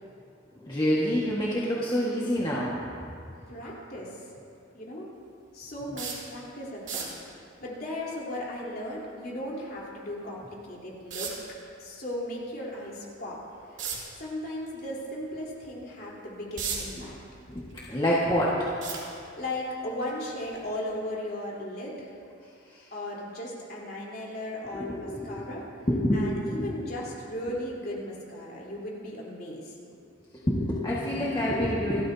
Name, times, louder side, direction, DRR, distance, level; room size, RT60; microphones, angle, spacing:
voice 1, 0.6-2.7 17.5-17.6 17.9-18.5 24.7-25.4 25.9-26.2 26.5-26.7 30.5-32.0, equal, 25° left, -7 dB, 1.7 m, -26 dB
voice 2, 3.5-4.2 4.7-5.1 5.5-7.1 7.6-11.4 11.8-13.4 14.2-17.2 19.4-22.1 22.9-25.6 26.1-29.7, left 1 dB, 50° left, -5 dB, 3.8 m, -36 dB
sound 1, 6.0-6.3 6.8-7.2 10.0-10.1 11.1-11.5 13.8-14.1 14.6-14.8 15.3-15.4 16.2-17.0 17.4-18.2 18.8-19.5 20.4-20.6 21.0-21.1, right 7 dB, 65° right, 3.3 m, -34 dB
28.5 x 13.5 x 2.8 m, 2.5 s
head